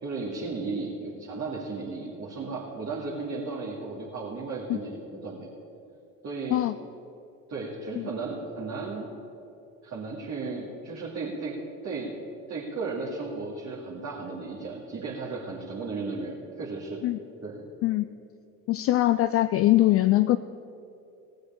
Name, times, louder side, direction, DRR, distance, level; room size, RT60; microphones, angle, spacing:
voice 1, 0.0-5.5 6.2-6.6 7.5-9.1 9.8-11.6 11.8-12.1 12.5-17.1 17.4-17.6, right 3 dB, 35° right, -5 dB, 2.4 m, -35 dB
voice 2, 18.7-20.4, left 15 dB, 35° left, 12 dB, 0.4 m, -22 dB
18.0 x 6.5 x 7.1 m, 2.7 s
figure-of-eight pair, 65°, 44 cm